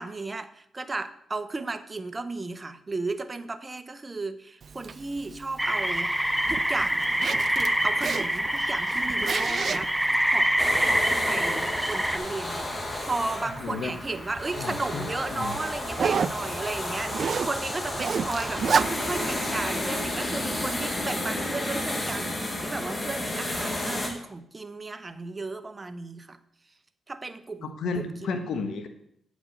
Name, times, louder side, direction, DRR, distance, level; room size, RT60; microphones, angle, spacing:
voice 1, 0.0-6.1 6.5-7.1 7.5-9.9 10.3-10.5 10.8-12.7 13.0-26.4 27.1-28.4, right 3 dB, 30° right, 11 dB, 0.8 m, -34 dB
Zipper (clothing), 4.6-21.1, right 6 dB, 55° right, 0.4 m, -34 dB
sound 1, 5.6-12.2, right 1 dB, 5° right, 0.7 m, -25 dB
sound 2, 10.6-24.1, left 1 dB, 25° left, 2.0 m, -32 dB
voice 2, 13.6-13.9 14.6-15.6 27.6-28.9, left 4 dB, 75° left, 7 dB, 1.2 m, -32 dB
8.7 x 5.2 x 6.5 m, 0.71 s
cardioid pair, 65°, 0 cm